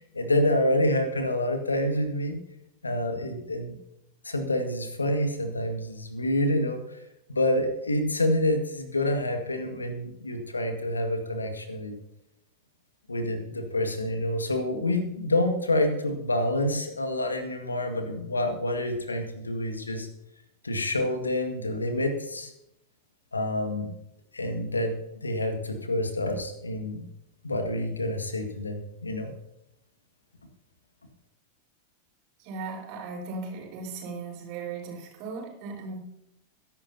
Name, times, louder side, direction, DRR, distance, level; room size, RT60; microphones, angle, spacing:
voice 1, 0.1-2.4 2.8-3.8 4.2-7.0 7.3-12.0 13.1-20.1 20.6-22.5 23.3-23.9 24.3-27.0 27.4-29.3, left 1 dB, 80° left, 6 dB, 1.9 m, -27 dB
voice 2, 32.4-36.0, right 4 dB, 45° right, 0 dB, 4.5 m, -37 dB
22.0 x 11.0 x 2.9 m, 0.80 s
figure-of-eight pair, 90°, 0 cm